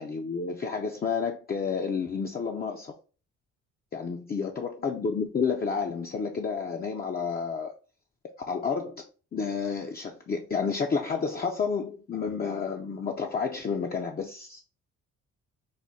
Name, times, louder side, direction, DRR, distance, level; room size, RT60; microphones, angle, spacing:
voice 1, 0.0-2.9 3.9-7.7 8.5-9.0 9.3-14.6, left 5 dB, 30° left, 0.5 m, -30 dB
4.9 x 2.2 x 4.1 m
cardioid pair, 90°, 30 cm